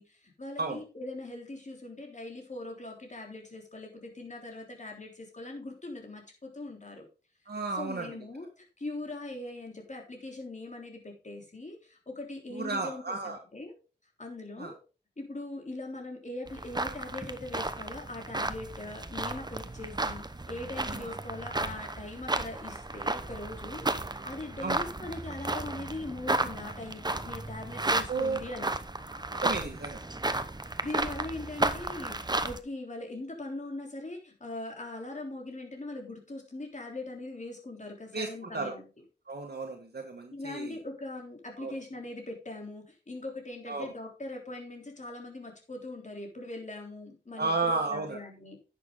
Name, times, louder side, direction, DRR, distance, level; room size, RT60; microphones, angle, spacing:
voice 1, 0.0-7.1 7.8-13.8 14.2-14.8 15.2-28.7 30.8-38.8 40.3-47.5 47.8-48.6, left 2 dB, 40° left, 1 dB, 3.5 m, -41 dB
voice 2, 7.5-8.1 12.5-13.4 14.6-14.7 20.9-21.1 24.6-24.8 28.1-28.4 29.4-30.0 38.1-38.7 39.3-40.8 41.6-41.8 43.7-43.9 47.4-48.2, right 3 dB, 60° right, 3 dB, 1.6 m, -33 dB
sound 1, 16.5-32.6, right 2 dB, 25° right, 0.9 m, -33 dB
10.5 x 7.2 x 3.8 m, 0.33 s
wide cardioid pair, 60°, 18 cm